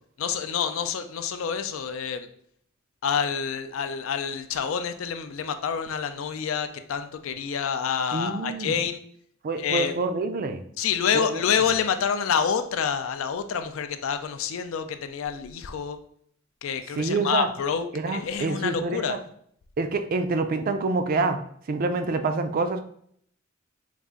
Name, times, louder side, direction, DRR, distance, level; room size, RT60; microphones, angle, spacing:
voice 1, 0.2-2.3 3.0-9.0 9.6-9.9 10.8-16.0 16.6-19.2, left 7 dB, 75° left, 9 dB, 0.4 m, -27 dB
voice 2, 8.1-8.8 9.4-10.6 11.1-11.4 17.0-17.5 17.9-19.2 19.8-21.4 21.7-22.8, right 3 dB, 45° right, 8 dB, 0.3 m, -26 dB
4.0 x 2.5 x 3.5 m, 0.66 s
head